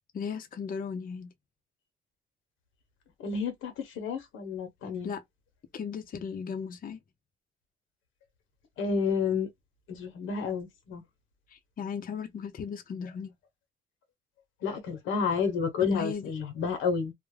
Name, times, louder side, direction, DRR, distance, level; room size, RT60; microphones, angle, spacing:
voice 1, 0.1-1.3 5.0-5.2 5.7-7.0 11.5-13.3 15.9-16.2, left 6 dB, 45° left, 0.5 m, -36 dB
voice 2, 3.2-5.1 8.8-9.5 9.9-11.0 14.6-17.1, left 5 dB, 90° left, 0.9 m, -30 dB
2.3 x 2.0 x 3.2 m
cardioid pair, 90°, 20 cm